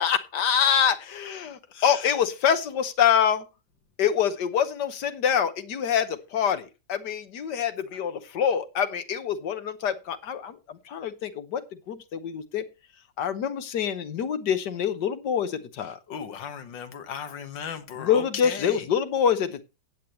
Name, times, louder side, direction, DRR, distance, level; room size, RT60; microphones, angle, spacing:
voice 1, 0.0-3.4 4.0-11.6 11.9-12.6 13.2-16.0 18.0-19.6, left 8 dB, 70° left, 1.6 m, -25 dB
voice 2, 1.7-2.1 16.1-18.8, left 7 dB, 85° left, 2.0 m, -36 dB
15.5 x 8.6 x 3.1 m
omnidirectional pair, 1.9 m